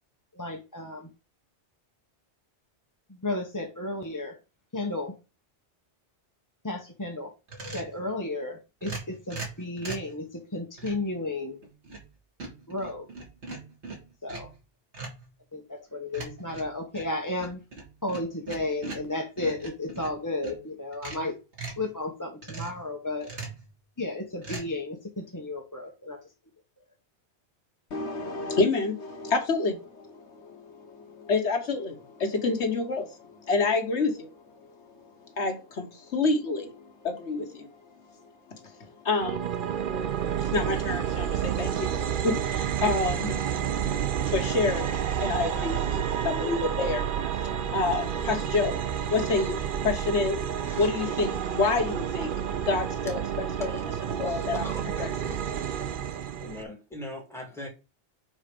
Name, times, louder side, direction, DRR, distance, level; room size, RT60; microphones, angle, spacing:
voice 1, 0.3-1.1 3.1-4.4 4.7-5.1 6.6-7.3 7.7-11.6 12.7-13.1 14.2-14.5 15.5-17.6 18.0-21.4 21.8-23.3 24.0-26.2, left 2 dB, 20° left, 0.9 m, -33 dB
sound 1, 7.5-8.0 8.8-10.1 10.8-11.1 11.6-12.1 12.4-14.6 14.9-15.3 16.1-20.6 20.9-21.9 22.4-22.8 23.2-23.7 24.4-24.6, right 3 dB, 75° right, 2.7 m, -40 dB
voice 2, 27.9-53.2 53.6-53.7 54.1-54.7 55.0-55.1, left 3 dB, 75° left, 1.5 m, -29 dB
sound 2, 39.2-56.6, right 8 dB, 55° right, 0.7 m, -30 dB
voice 3, 54.3-55.3 56.4-57.7, left 1 dB, ahead, 2.9 m, -41 dB
7.1 x 4.1 x 5.1 m
omnidirectional pair, 1.2 m